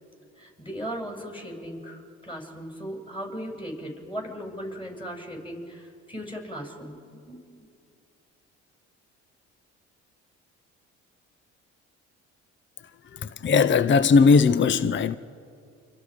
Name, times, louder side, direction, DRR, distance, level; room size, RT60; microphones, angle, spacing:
voice 1, 0.4-7.7, equal, 15° left, 6.9 m, -37 dB
voice 2, 13.1-15.1, left 5 dB, 35° left, 0.7 m, -19 dB
29.0 x 26.5 x 5.1 m
supercardioid pair, 70°, 32 cm